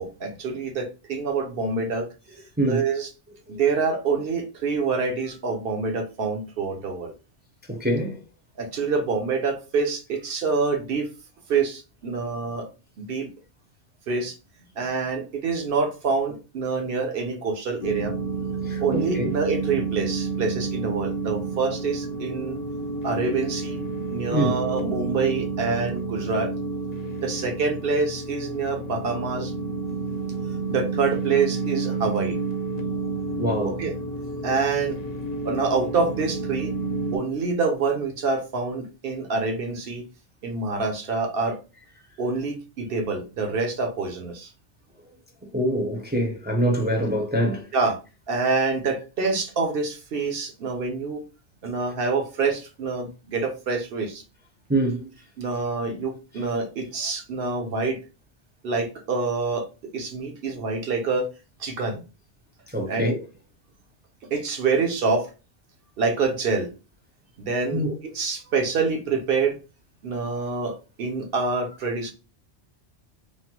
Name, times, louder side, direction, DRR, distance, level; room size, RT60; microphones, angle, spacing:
voice 1, 0.0-2.1 2.7-3.1 3.5-7.1 8.6-11.1 11.5-12.7 13.0-13.3 14.1-14.4 14.8-18.1 18.8-22.6 23.0-23.8 24.1-26.5 27.2-29.5 30.7-32.4 33.8-33.9 34.4-35.0 35.4-36.7 37.1-40.0 40.4-41.6 42.2-44.5 47.7-48.0 48.3-51.2 51.6-54.2 55.4-58.0 58.6-59.7 59.9-61.3 61.6-62.0 62.9-63.1 64.3-65.3 66.0-66.7 67.4-67.8 68.1-69.6 70.0-72.1, right 4 dB, 60° right, 0.8 m, -26 dB
voice 2, 7.7-8.1 18.7-19.3 24.3-24.6 33.4-33.8 45.5-47.7 54.7-55.1 62.7-63.2 67.7-67.9, right 1 dB, 10° right, 0.5 m, -24 dB
sound 1, 17.8-37.2, right 3 dB, 60° left, 0.8 m, -30 dB
3.2 x 2.1 x 2.8 m
omnidirectional pair, 1.2 m